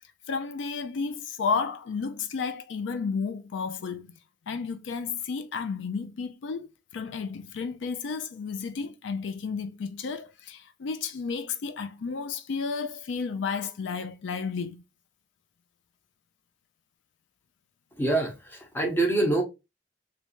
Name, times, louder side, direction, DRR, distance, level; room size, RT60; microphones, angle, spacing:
voice 1, 0.3-4.1 4.5-6.7 6.9-14.8, left 5 dB, 80° left, 0.4 m, -32 dB
voice 2, 18.0-19.4, right 2 dB, 10° left, 0.8 m, -25 dB
3.2 x 2.6 x 3.0 m
head